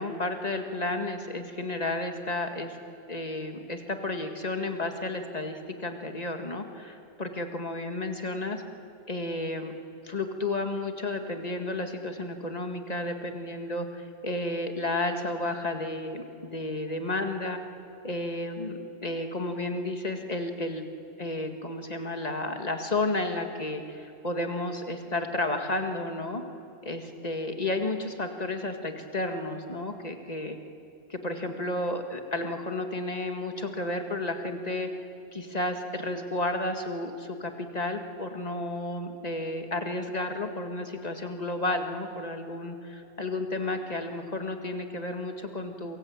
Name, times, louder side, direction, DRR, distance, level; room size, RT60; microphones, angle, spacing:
voice 1, 0.0-2.8 3.1-8.6 9.1-9.7 10.0-16.2 16.5-17.6 18.0-20.9 21.2-26.4 26.8-30.6 31.1-34.9 35.3-46.0, left 2 dB, 35° left, 5 dB, 2.0 m, -32 dB
27.5 x 23.5 x 8.8 m, 2.7 s
omnidirectional pair, 1.2 m